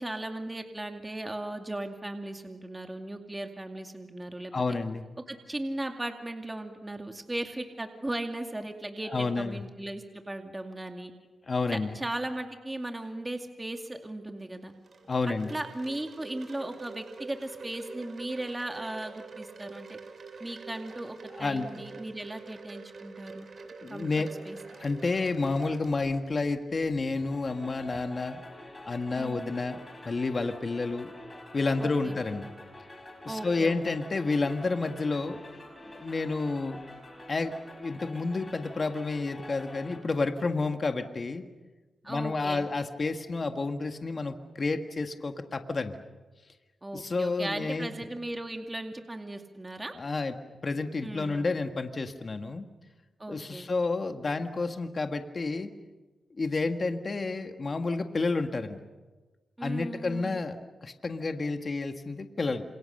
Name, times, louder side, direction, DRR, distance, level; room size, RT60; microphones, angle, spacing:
voice 1, 0.0-4.8 5.3-11.1 11.7-14.7 15.3-20.0 20.4-23.5 23.9-24.6 29.1-29.5 31.8-32.2 33.3-34.0 42.0-42.7 46.8-49.9 51.0-51.5 53.2-53.7 59.6-60.4, right 1 dB, 15° right, 4 dB, 2.4 m, -37 dB
voice 2, 4.5-5.0 9.1-9.6 11.5-11.9 15.1-15.6 21.3-21.7 23.8-24.3 24.7-28.4 28.9-29.8 30.1-31.1 31.5-32.5 33.3-35.4 35.9-36.8 37.3-41.4 42.1-46.0 46.9-47.9 50.0-50.3 50.6-52.7 53.3-55.7 56.4-58.8 59.6-60.6 60.8-62.6, left 3 dB, 40° left, 6 dB, 1.7 m, -30 dB
Wind chime, 14.4-26.7, right 4 dB, 60° right, 3.7 m, -46 dB
sound 1, 27.2-40.0, left 1 dB, 25° left, 6.3 m, -47 dB
28.0 x 27.5 x 6.7 m, 1.2 s
cardioid pair, 90°, 0 cm